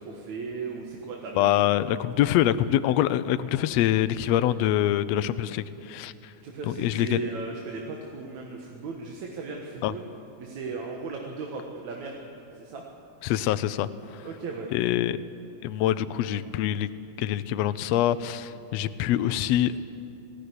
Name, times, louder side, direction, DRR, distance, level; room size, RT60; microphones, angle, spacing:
voice 1, 0.0-1.7 6.4-10.0 10.4-12.3 12.6-12.8 14.2-14.7, right 4 dB, 65° right, 0 dB, 2.7 m, -36 dB
voice 2, 1.4-6.3 6.6-7.2 9.8-9.9 13.2-14.3 14.7-15.2 15.6-16.9 17.2-19.8, left 12 dB, 80° left, 12 dB, 1.5 m, -25 dB
20.0 x 17.0 x 9.6 m, 2.8 s
omnidirectional pair, 3.6 m